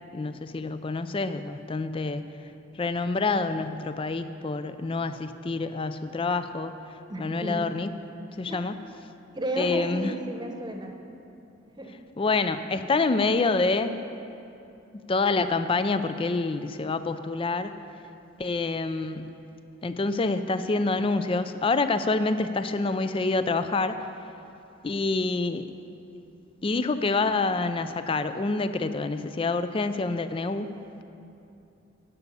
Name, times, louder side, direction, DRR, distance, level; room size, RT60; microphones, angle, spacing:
voice 1, 0.1-2.3 2.8-6.7 7.2-7.9 8.4-8.8 9.6-10.1 12.2-14.0 14.9-17.7 18.4-19.3 19.8-24.0 24.8-25.7 26.6-30.7, left 3 dB, 25° left, 11 dB, 0.4 m, -27 dB
voice 2, 7.1-7.6 8.5-8.7 9.3-11.0 11.8-12.0, right 1 dB, 20° right, 3 dB, 1.0 m, -33 dB
10.5 x 7.1 x 8.5 m, 2.8 s
head